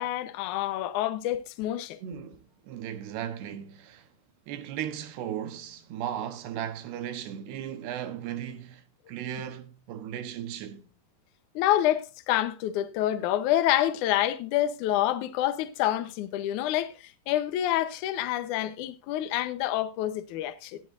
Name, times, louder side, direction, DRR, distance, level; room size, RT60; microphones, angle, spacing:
voice 1, 0.0-2.0 11.6-20.8, left 13 dB, 75° left, 1.9 m, -27 dB
voice 2, 2.0-4.1 4.5-10.9, right 10 dB, 80° right, 3.2 m, -36 dB
17.5 x 11.0 x 2.6 m
omnidirectional pair, 4.8 m